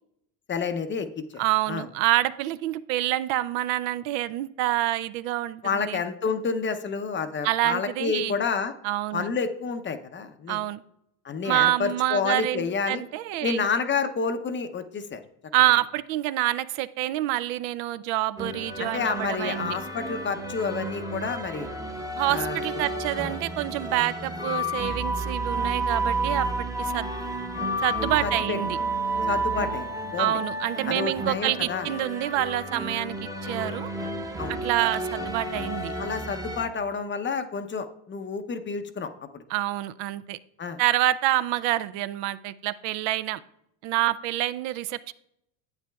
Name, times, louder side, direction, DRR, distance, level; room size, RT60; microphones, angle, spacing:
voice 1, 0.5-1.1 1.3-1.4 1.7-1.8 5.6-8.7 9.1-10.6 11.2-13.0 13.4-15.2 18.8-21.7 22.3-22.6 28.2-28.6 29.3-30.4 30.9-31.9 34.4-34.5 36.0-39.4 40.6-40.8, left 5 dB, 25° left, 0.6 m, -29 dB
voice 2, 1.4-6.0 7.4-8.3 8.8-9.3 10.5-10.8 11.4-13.7 15.5-19.8 22.2-27.1 27.8-28.8 30.2-33.9 34.5-35.9 39.5-40.4 40.8-43.4 43.8-45.1, right 15 dB, 65° right, 0.5 m, -27 dB
sound 1, 18.4-36.7, right 1 dB, 5° right, 0.8 m, -31 dB
10.5 x 8.2 x 2.3 m
supercardioid pair, 105°, 47 cm